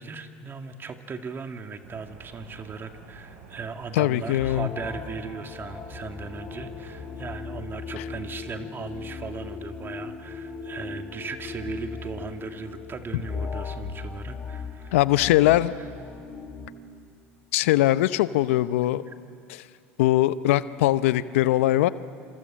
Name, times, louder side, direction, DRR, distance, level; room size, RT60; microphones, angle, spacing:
voice 1, 0.0-15.0 19.1-19.2, right 5 dB, 30° right, 6 dB, 2.3 m, -37 dB
sound 1, 1.8-7.2, right 4 dB, 70° right, 5.2 m, -48 dB
voice 2, 4.0-4.7 14.9-15.7 17.5-19.0 19.5-19.6 20.0-21.9, left 15 dB, 75° left, 15 dB, 0.7 m, -21 dB
sound 2, 4.4-16.7, left 5 dB, 25° left, 4.3 m, -38 dB
27.0 x 26.5 x 7.6 m, 2.4 s
hypercardioid pair, 80°, 7 cm